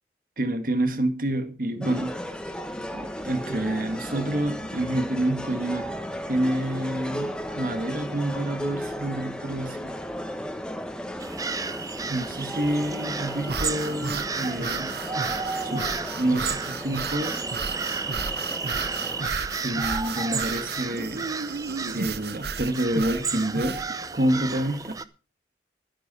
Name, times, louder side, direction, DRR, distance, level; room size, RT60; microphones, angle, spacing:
voice 1, 0.4-2.2 2.9-5.9 6.3-9.9 12.1-15.1 15.6-17.4 18.8-18.9 19.6-21.6 21.9-23.8 24.1-25.0, right 1 dB, 50° right, 1.8 m, -28 dB
sound 1, 1.8-19.3, equal, 5° left, 1.3 m, -35 dB
sound 2, 11.2-25.0, right 4 dB, 20° right, 0.7 m, -33 dB
sound 3, 13.5-23.9, right 5 dB, 65° right, 0.8 m, -33 dB
12.5 x 10.0 x 5.5 m
head